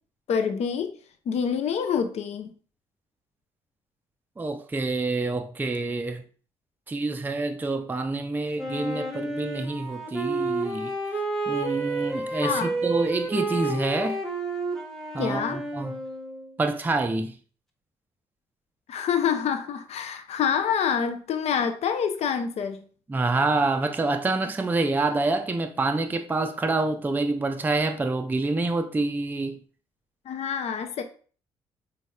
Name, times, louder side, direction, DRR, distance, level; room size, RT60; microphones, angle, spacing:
voice 1, 0.3-1.0 1.3-2.5 12.4-12.8 15.2-15.6 18.9-22.8 30.3-31.0, left 7 dB, 55° left, 0.5 m, -27 dB
voice 2, 4.4-6.2 6.9-10.9 11.5-14.2 15.1-15.9 16.6-17.4 23.1-29.6, right 3 dB, 15° right, 0.4 m, -27 dB
Wind instrument woodwind instrument, 8.6-16.6, right 2 dB, ahead, 1.0 m, -30 dB
4.0 x 3.2 x 2.3 m
hypercardioid pair, 50°, 13 cm